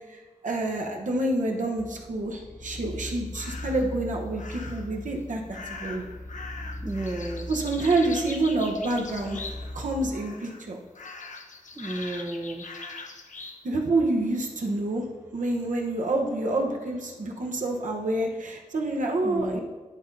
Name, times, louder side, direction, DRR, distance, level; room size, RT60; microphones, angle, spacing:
voice 1, 0.1-6.0 7.5-9.5 9.7-10.8 13.6-15.1 15.3-19.6, right 2 dB, 80° right, 1 dB, 1.1 m, -28 dB
sound 1, 1.8-10.1, left 1 dB, 30° left, 0.4 m, -39 dB
sound 2, 3.3-3.9 4.4-4.9 5.5-9.8 10.1-10.6 10.9-13.6, left 4 dB, 75° left, 0.8 m, -41 dB
voice 2, 6.8-7.5 11.8-12.7 19.2-19.6, right 2 dB, 20° right, 5 dB, 0.6 m, -32 dB
10.5 x 3.9 x 4.1 m, 1.3 s
cardioid pair, 55°, 13 cm